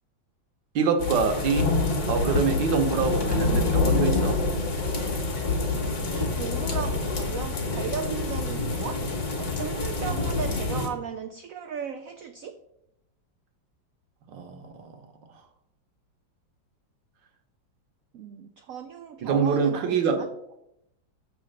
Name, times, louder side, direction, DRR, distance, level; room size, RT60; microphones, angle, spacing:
voice 1, 0.7-1.7 2.1-4.4 14.3-15.0 19.2-20.2, right 5 dB, 70° right, 6 dB, 1.5 m, -25 dB
sound 1, 1.0-10.9, left 3 dB, 55° left, 1.8 m, -26 dB
voice 2, 6.1-9.0 9.4-12.6 18.1-20.3, right 7 dB, 90° right, 7 dB, 0.7 m, -36 dB
6.6 x 4.2 x 6.3 m, 0.80 s
omnidirectional pair, 2.0 m